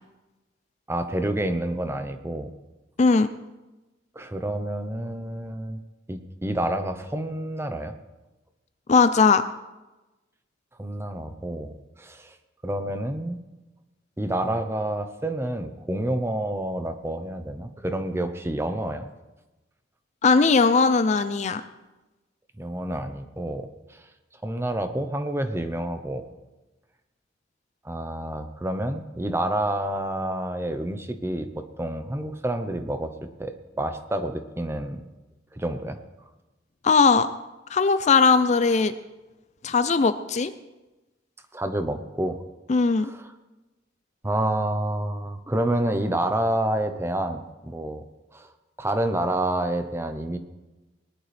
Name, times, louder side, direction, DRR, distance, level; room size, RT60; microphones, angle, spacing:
voice 1, 0.9-2.5 4.1-5.8 6.1-7.9 10.8-12.3 12.6-13.4 14.2-19.1 22.6-24.0 24.4-26.2 27.8-33.1 33.4-35.0 35.5-36.0 41.5-42.4 43.0-43.2 44.2-48.0 48.3-48.5 48.8-50.4, right 1 dB, 15° right, 8 dB, 0.8 m, -28 dB
voice 2, 8.9-9.4 20.2-21.6 36.8-37.3 37.7-38.9 39.6-40.5 42.7-43.1, left 4 dB, 35° left, 11 dB, 0.4 m, -19 dB
20.0 x 11.0 x 3.4 m, 1.1 s
head